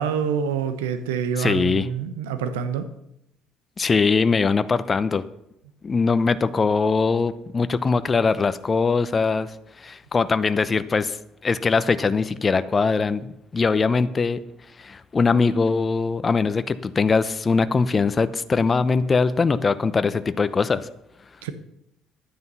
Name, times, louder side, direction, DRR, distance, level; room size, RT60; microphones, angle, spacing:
voice 1, 0.0-2.8 21.4-21.5, right 7 dB, 80° right, 10 dB, 1.0 m, -26 dB
voice 2, 1.4-1.9 3.8-5.2 5.8-9.5 9.8-11.2 11.4-14.4 14.8-20.9, left 4 dB, 35° left, 13 dB, 0.8 m, -21 dB
11.5 x 9.6 x 5.6 m, 0.81 s
hypercardioid pair, 60°, 0 cm